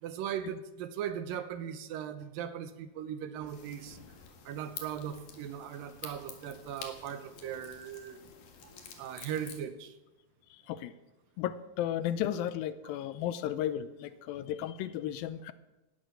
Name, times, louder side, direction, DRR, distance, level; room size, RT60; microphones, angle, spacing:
voice 1, 0.0-4.0 4.5-8.2 8.6-8.7 9.0-10.0, right 9 dB, 75° right, 11 dB, 2.4 m, -38 dB
sound 1, 3.5-9.6, left 7 dB, 65° left, 3.2 m, -49 dB
voice 2, 10.5-10.9 11.4-15.5, left 11 dB, 80° left, 14 dB, 2.3 m, -34 dB
18.0 x 9.5 x 6.7 m, 1.0 s
omnidirectional pair, 4.3 m